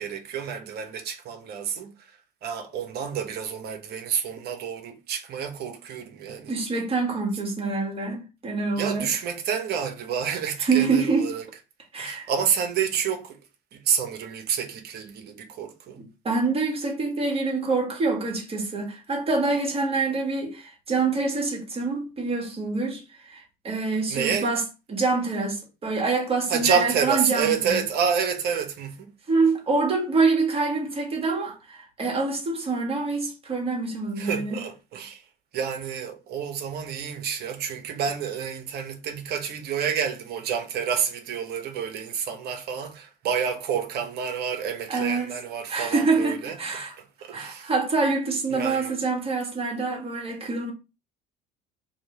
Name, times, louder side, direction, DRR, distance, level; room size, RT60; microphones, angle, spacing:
voice 1, 0.0-1.9 2.4-6.5 8.8-11.4 12.0-13.4 13.7-16.0 24.1-24.5 26.5-29.1 34.2-35.2 35.5-46.6 47.0-47.7 48.5-49.0, right 7 dB, 50° right, 1.0 m, -29 dB
voice 2, 6.5-9.1 10.6-11.3 11.9-12.3 16.0-24.6 24.9-27.8 29.3-34.6 44.9-45.3 45.7-46.9 47.3-50.7, right 3 dB, 25° right, 1.6 m, -26 dB
3.1 x 2.9 x 4.0 m
figure-of-eight pair, 60°, 21 cm